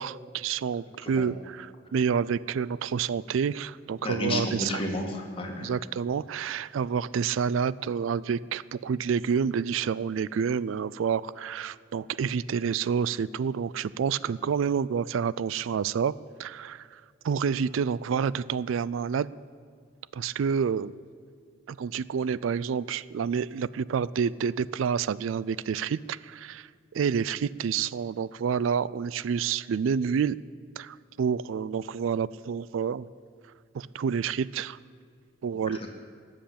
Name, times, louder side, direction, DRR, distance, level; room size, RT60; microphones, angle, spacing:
voice 1, 0.0-4.8 5.6-16.1 16.4-19.3 20.1-20.9 21.7-26.7 26.9-30.4 30.8-33.1 33.7-34.8 35.4-35.8, right 6 dB, 75° right, 20 dB, 0.3 m, -28 dB
voice 2, 4.0-5.7 35.7-35.9, left 1 dB, 30° left, 1 dB, 2.1 m, -32 dB
19.0 x 7.7 x 8.6 m, 2.3 s
head